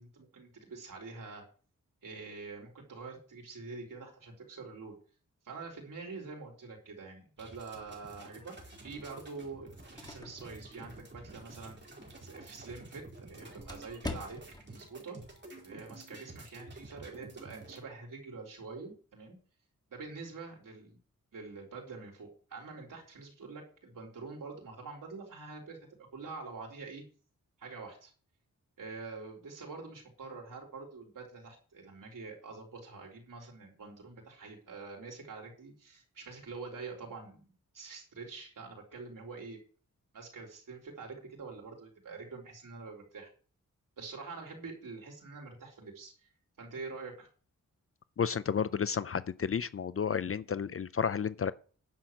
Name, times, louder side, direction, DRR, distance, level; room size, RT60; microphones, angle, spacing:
voice 1, 0.0-1.4 2.0-5.0 5.4-8.5 8.8-14.4 14.7-15.2 15.6-19.4 19.9-21.0 21.3-27.0 27.6-28.1 28.8-39.6 40.1-43.3 44.0-46.3 46.6-47.3, right 4 dB, 85° right, 3.9 m, -46 dB
sound 1, 7.4-17.8, right 2 dB, 35° right, 4.4 m, -51 dB
sound 2, 9.5-14.8, left 2 dB, 15° left, 1.7 m, -47 dB
voice 2, 48.2-51.5, left 7 dB, 45° left, 0.5 m, -31 dB
10.5 x 7.6 x 6.4 m
wide cardioid pair, 110°, 32 cm